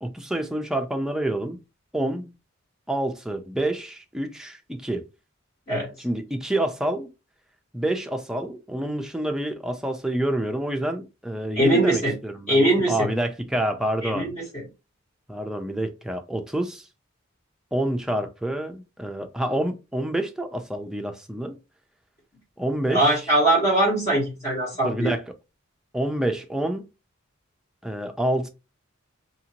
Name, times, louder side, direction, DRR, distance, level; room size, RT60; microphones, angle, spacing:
voice 1, 0.0-1.6 1.9-2.3 2.9-5.0 6.0-7.1 7.7-14.3 15.3-16.9 17.7-21.6 22.6-23.2 24.8-25.2 25.9-26.9 27.8-28.5, right 1 dB, 5° right, 0.4 m, -28 dB
voice 2, 11.6-12.1 12.5-13.1 14.0-14.6 22.9-25.1, right 1 dB, 35° left, 1.3 m, -21 dB
2.8 x 2.6 x 2.8 m
head